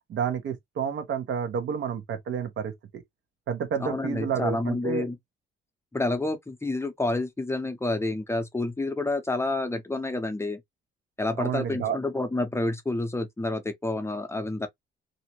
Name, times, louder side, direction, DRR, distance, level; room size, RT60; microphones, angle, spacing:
voice 1, 0.1-3.0 3.5-5.0 11.4-12.0, right 7 dB, 70° right, 0.9 m, -30 dB
voice 2, 3.8-5.2 5.9-10.6 11.2-14.7, left 2 dB, 15° left, 0.6 m, -29 dB
2.7 x 2.1 x 2.8 m
cardioid pair, 90°, 20 cm